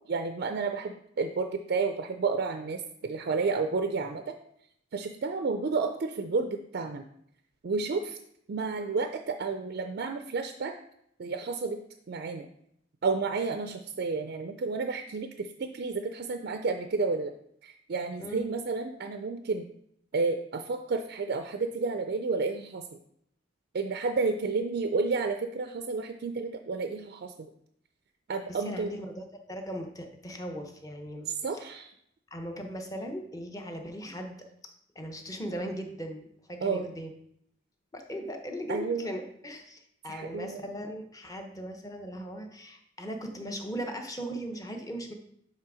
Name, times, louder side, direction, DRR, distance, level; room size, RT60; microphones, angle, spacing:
voice 1, 0.1-4.3 4.9-7.0 7.6-8.2 8.5-10.7 11.2-11.8 12.1-12.5 13.0-17.3 17.6-19.7 20.1-22.8 23.7-27.3 28.3-28.9 31.4-31.9 36.6-36.9 38.7-39.1 40.1-40.6, right 4 dB, 50° right, 7 dB, 0.4 m, -31 dB
voice 2, 28.5-31.7 32.3-34.4 34.9-37.1 37.9-45.1, equal, 20° left, 4 dB, 0.8 m, -38 dB
7.4 x 3.3 x 4.9 m, 0.71 s
head